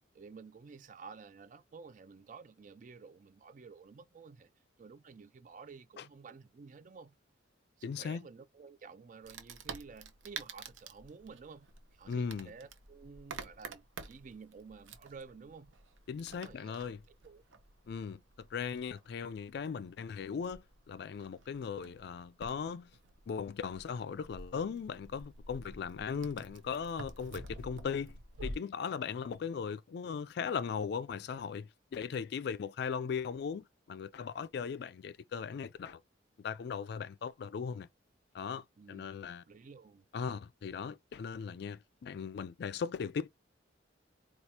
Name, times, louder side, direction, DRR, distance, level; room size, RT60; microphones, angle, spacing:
voice 1, 0.1-4.5 4.8-7.1 7.8-15.7 16.3-16.8 17.1-17.4 38.8-39.1 39.5-40.1, right 5 dB, 40° right, 0.3 m, -52 dB
voice 2, 7.8-8.2 12.1-12.5 16.1-17.0 17.9-22.9 23.3-28.2 28.4-36.0 36.4-37.9 38.3-39.4 40.1-43.3, left 6 dB, 55° left, 0.3 m, -38 dB
Wood, 9.2-28.5, right 3 dB, 85° right, 0.7 m, -50 dB
4.4 x 2.4 x 2.8 m
head